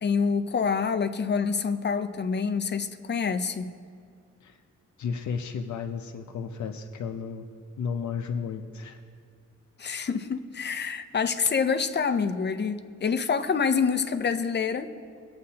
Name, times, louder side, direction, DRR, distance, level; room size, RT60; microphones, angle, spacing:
voice 1, 0.0-3.7 9.8-14.9, left 5 dB, 35° left, 9 dB, 0.6 m, -27 dB
voice 2, 5.0-7.5 7.8-9.0, left 6 dB, 75° left, 3 dB, 0.7 m, -33 dB
22.5 x 8.7 x 2.9 m, 2.2 s
wide cardioid pair, 145°, 29 cm